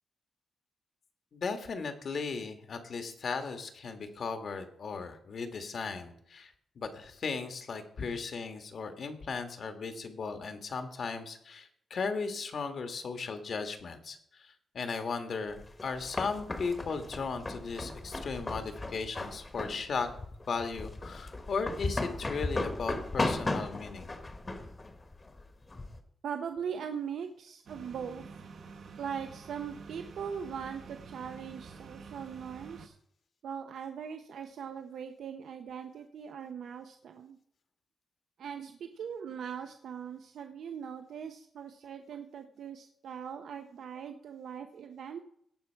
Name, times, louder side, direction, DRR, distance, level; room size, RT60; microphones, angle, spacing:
voice 1, 1.3-20.1 20.5-24.1, left 4 dB, 50° left, 7 dB, 1.5 m, -36 dB
sound 1, 15.6-26.0, left 2 dB, 20° left, 1.2 m, -36 dB
voice 2, 26.2-28.2 29.0-32.9 33.4-37.4 38.4-45.2, right 7 dB, 80° right, 6 dB, 0.7 m, -40 dB
sound 2, 27.7-32.9, right 5 dB, 60° right, 1.0 m, -48 dB
17.5 x 6.0 x 4.5 m, 0.68 s
wide cardioid pair, 155°, 0 cm